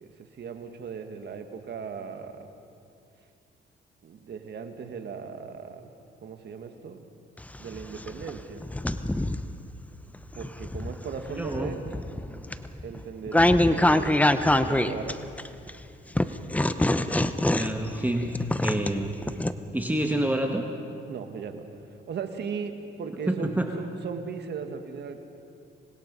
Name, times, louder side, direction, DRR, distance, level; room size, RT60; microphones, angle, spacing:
voice 1, 0.0-2.5 4.0-5.9 6.2-7.0 7.6-8.6 10.3-11.8 12.8-15.2 21.1-21.7 22.1-25.2, right 6 dB, 60° right, 6 dB, 1.9 m, -37 dB
sound 1, 7.4-9.5 10.1-15.7 16.2-19.5, left 1 dB, 5° left, 0.8 m, -25 dB
voice 2, 11.4-11.7 17.5-19.2 19.7-20.7 23.3-23.7, right 1 dB, 10° right, 3 dB, 1.6 m, -28 dB
25.5 x 20.0 x 5.5 m, 2.5 s
cardioid pair, 90°, 20 cm